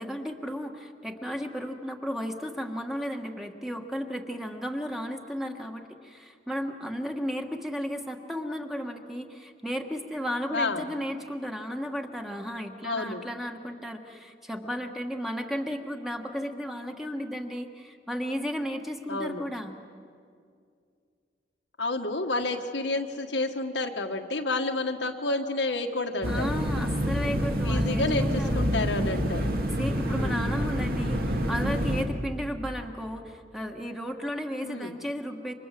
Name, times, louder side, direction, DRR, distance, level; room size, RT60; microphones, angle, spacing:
voice 1, 0.0-19.8 26.2-28.6 29.8-35.5, equal, ahead, 3 dB, 1.4 m, -34 dB
voice 2, 10.5-10.9 12.8-13.2 19.1-19.5 21.8-26.5 27.6-29.5 30.1-30.4 34.6-34.9, left 2 dB, 85° left, 3 dB, 1.8 m, -30 dB
sound 1, 26.2-32.0, equal, 55° right, 2.1 m, -27 dB
28.5 x 25.5 x 7.6 m, 2.3 s
head